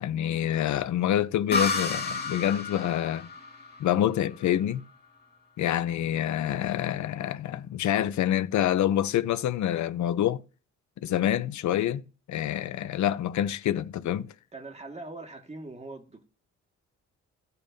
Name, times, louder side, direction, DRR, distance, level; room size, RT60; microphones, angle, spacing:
voice 1, 0.0-3.3 3.8-4.8 5.6-10.4 11.0-12.0 12.3-14.3, left 11 dB, 70° left, 0.8 m, -27 dB
sound 1, 1.5-5.0, left 3 dB, 35° left, 2.3 m, -32 dB
voice 2, 14.5-16.2, right 2 dB, 20° right, 2.0 m, -42 dB
16.0 x 5.4 x 2.8 m
cardioid pair, 90°, 30 cm